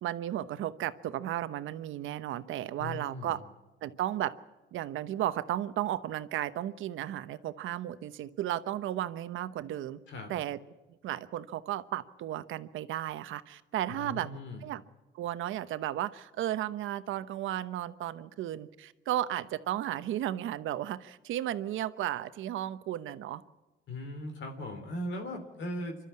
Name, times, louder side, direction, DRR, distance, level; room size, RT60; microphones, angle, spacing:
voice 1, 0.0-3.4 3.8-4.3 4.7-10.0 10.3-10.6 11.0-14.3 14.6-14.8 15.1-23.4, right 12 dB, 85° right, 13 dB, 1.0 m, -34 dB
voice 2, 2.8-3.4 10.1-10.3 13.9-14.6 23.9-26.0, left 1 dB, 70° left, 3 dB, 3.2 m, -39 dB
27.0 x 12.5 x 8.6 m, 1.2 s
cardioid pair, 90°, 20 cm